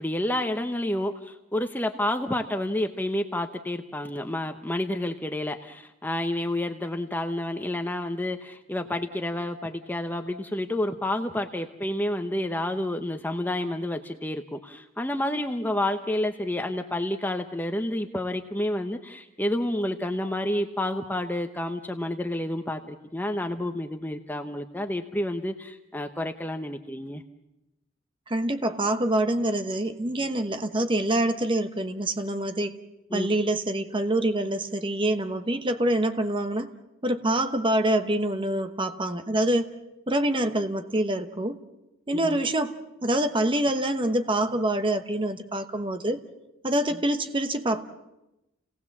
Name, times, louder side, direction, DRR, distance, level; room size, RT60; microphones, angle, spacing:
voice 1, 0.0-27.2 33.1-33.4 42.1-42.4, left 1 dB, 10° left, 6 dB, 0.9 m, -29 dB
voice 2, 28.3-32.7 33.1-36.7 37.0-39.7 40.1-41.6 42.1-46.2 46.6-47.8, right 1 dB, 25° right, 9 dB, 1.1 m, -26 dB
29.5 x 18.5 x 7.3 m, 0.95 s
head